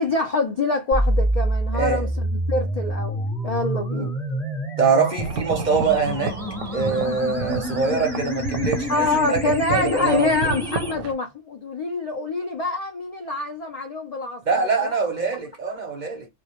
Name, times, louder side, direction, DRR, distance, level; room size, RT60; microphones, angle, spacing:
voice 1, 0.0-4.2 8.9-15.0, left 3 dB, 75° left, 0.3 m, -25 dB
sound 1, 0.9-10.9, equal, ahead, 0.6 m, -27 dB
voice 2, 1.7-2.1 3.9-4.1 4.8-6.4 6.7-9.4 9.7-10.3 14.5-16.3, right 5 dB, 50° right, 0.6 m, -23 dB
sound 2, 5.2-11.1, right 4 dB, 90° right, 0.9 m, -31 dB
2.1 x 2.1 x 2.8 m
omnidirectional pair, 1.3 m